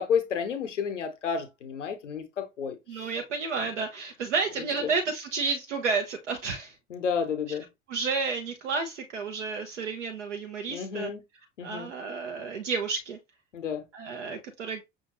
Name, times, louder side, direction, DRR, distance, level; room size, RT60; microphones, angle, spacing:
voice 1, 0.0-3.1 4.8-4.9 6.9-7.6 10.7-11.2 11.6-11.9 13.5-13.8, left 7 dB, 80° left, 0.8 m, -31 dB
voice 2, 2.9-6.8 7.5-7.6 7.9-11.1 11.6-13.2 13.9-14.8, right 4 dB, 80° right, 0.7 m, -31 dB
5.7 x 2.6 x 2.9 m
figure-of-eight pair, 55°, 36 cm